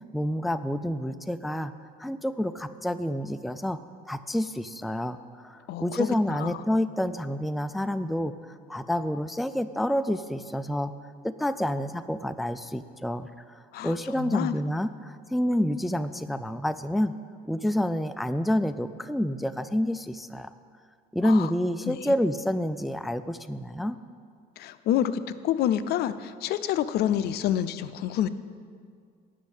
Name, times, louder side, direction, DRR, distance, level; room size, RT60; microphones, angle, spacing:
voice 1, 0.1-1.7 2.0-3.8 4.1-10.9 11.2-17.1 17.5-20.5 21.1-24.0, equal, ahead, 11 dB, 0.3 m, -28 dB
voice 2, 5.7-6.6 13.7-14.6 21.2-21.5 21.8-22.1 24.6-28.3, left 10 dB, 70° left, 13 dB, 0.5 m, -28 dB
10.5 x 6.3 x 8.2 m, 2.1 s
cardioid pair, 110°, 17 cm